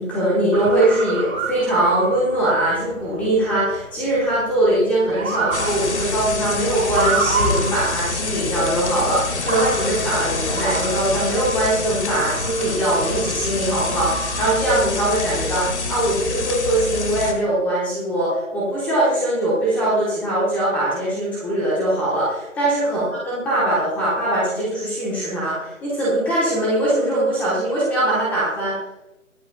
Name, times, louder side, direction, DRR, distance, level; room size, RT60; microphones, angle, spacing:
voice 1, 0.0-28.8, right 1 dB, 5° left, -7 dB, 1.1 m, -21 dB
Motor vehicle (road) / Siren, 0.5-16.1, right 4 dB, 85° right, 2.8 m, -30 dB
sound 1, 5.5-17.3, left 3 dB, 55° left, 1.8 m, -26 dB
23.0 x 8.2 x 2.2 m, 0.93 s
figure-of-eight pair, 155°, 41 cm